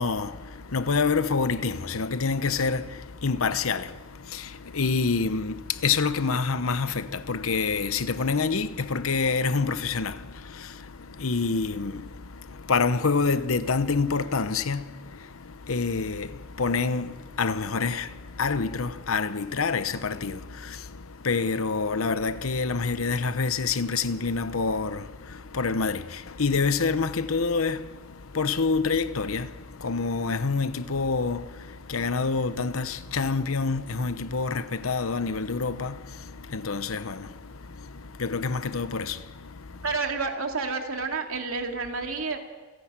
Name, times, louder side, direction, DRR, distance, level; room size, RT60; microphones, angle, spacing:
voice 1, 0.0-39.8, left 4 dB, 80° left, 0.9 m, -27 dB
voice 2, 39.8-42.4, right 4 dB, 80° right, 2.5 m, -29 dB
28.5 x 10.5 x 8.9 m
head